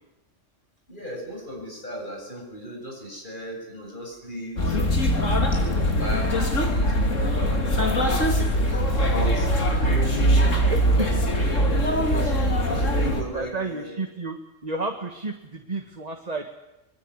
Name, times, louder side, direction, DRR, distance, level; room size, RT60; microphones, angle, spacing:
voice 1, 0.9-4.8 5.5-7.6 7.9-8.3 8.7-9.5 9.8-10.5 10.9-14.0, equal, 40° left, 0 dB, 7.9 m, -36 dB
sound 1, 4.6-13.2, equal, 85° left, 3.4 m, -22 dB
voice 2, 10.6-11.1 12.6-12.8 13.1-16.5, right 2 dB, 35° right, 4 dB, 1.8 m, -32 dB
24.0 x 21.0 x 9.9 m, 0.98 s
omnidirectional pair, 1.3 m